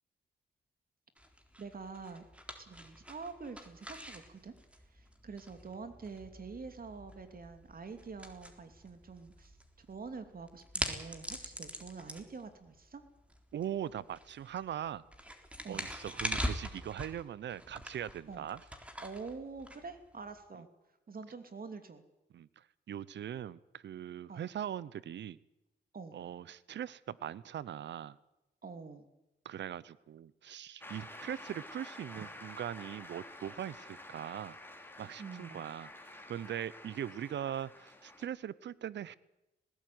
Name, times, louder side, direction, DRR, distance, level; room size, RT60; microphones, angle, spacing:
sound 1, 1.2-20.4, equal, 5° right, 3.9 m, -44 dB
voice 1, 1.6-2.2 2.6-13.0 15.6-15.9 18.3-18.5 19.0-20.7 21.1-22.0 24.3-24.5 25.9-26.2 28.6-29.1 32.2-32.3 35.2-35.6, right 4 dB, 55° right, 8 dB, 2.9 m, -46 dB
voice 2, 13.5-15.0 15.7-18.6 22.3-25.4 26.1-28.2 29.4-34.6 35.0-39.1, right 10 dB, 80° right, 20 dB, 0.7 m, -41 dB
Shout / Cheering / Applause, 30.8-38.3, left 1 dB, 10° left, 3.5 m, -50 dB
19.5 x 17.0 x 9.5 m, 0.93 s
cardioid pair, 65°, 18 cm